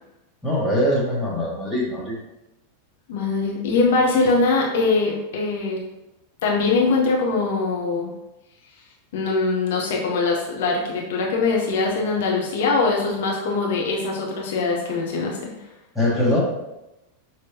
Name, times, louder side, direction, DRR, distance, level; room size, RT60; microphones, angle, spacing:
voice 1, 0.4-2.2 15.9-16.4, left 1 dB, ahead, -6 dB, 1.3 m, -22 dB
voice 2, 3.1-5.8 6.4-8.1 9.1-15.5, left 3 dB, 55° left, -1 dB, 0.8 m, -22 dB
5.9 x 3.1 x 2.9 m, 0.95 s
figure-of-eight pair, 90°, 0 cm